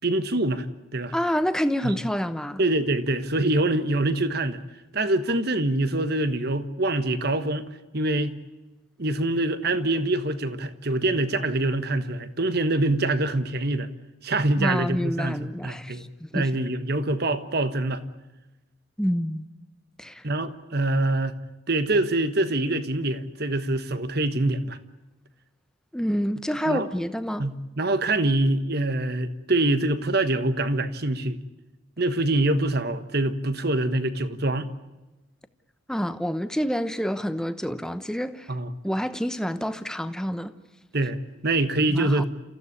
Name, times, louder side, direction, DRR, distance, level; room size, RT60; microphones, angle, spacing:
voice 1, 0.0-0.6 0.9-1.1 1.8-1.9 2.6-4.6 4.9-7.6 7.9-8.4 9.0-13.9 14.2-18.0 20.2-21.4 21.7-24.8 26.6-26.9 27.4-31.4 32.0-34.7 38.5-38.7 40.9-42.2, right 2 dB, 50° right, 1.4 m, -25 dB
voice 2, 1.1-2.6 14.6-16.5 19.0-19.5 20.0-20.3 25.9-27.4 35.9-38.5 38.8-40.5 41.9-42.2, equal, 5° left, 0.9 m, -28 dB
29.0 x 15.5 x 9.8 m
head